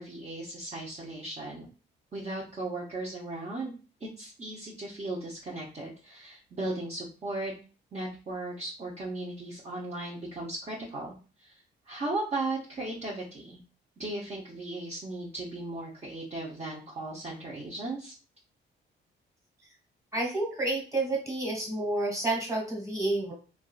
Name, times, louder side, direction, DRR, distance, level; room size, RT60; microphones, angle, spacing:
voice 1, 0.0-1.7 2.1-7.5 7.9-13.6 14.0-18.1, right 2 dB, 35° right, -4 dB, 0.8 m, -37 dB
voice 2, 20.1-23.3, right 2 dB, 15° right, -2 dB, 1.6 m, -30 dB
3.5 x 2.5 x 2.4 m, 0.36 s
cardioid pair, 90°, 20 cm